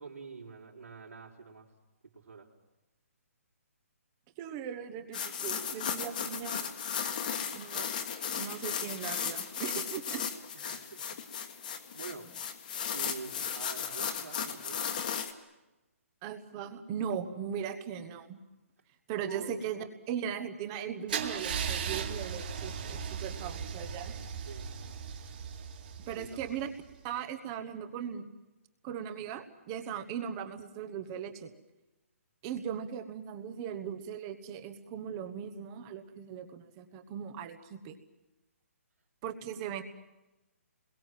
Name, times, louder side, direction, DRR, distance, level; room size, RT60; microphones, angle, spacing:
voice 1, 0.0-1.7 2.1-2.5 10.5-11.2 11.5-12.3 12.9-14.9 19.2-19.6 24.5-24.7 26.1-26.4 39.5-39.6, right 5 dB, 85° right, -6 dB, 4.4 m, -46 dB
voice 2, 4.4-6.7 7.5-7.9 8.4-10.3 16.2-18.4 19.1-24.1 26.1-26.7 27.0-28.2 28.8-31.5 32.4-38.0 39.2-39.8, right 8 dB, 15° right, 8 dB, 1.2 m, -38 dB
sound 1, 5.1-15.3, left 7 dB, 35° left, 1.7 m, -36 dB
Car / Engine starting / Idling, 21.1-26.9, right 7 dB, 40° right, 2.3 m, -37 dB
27.5 x 22.0 x 7.6 m, 1.0 s
hypercardioid pair, 175°, 8 cm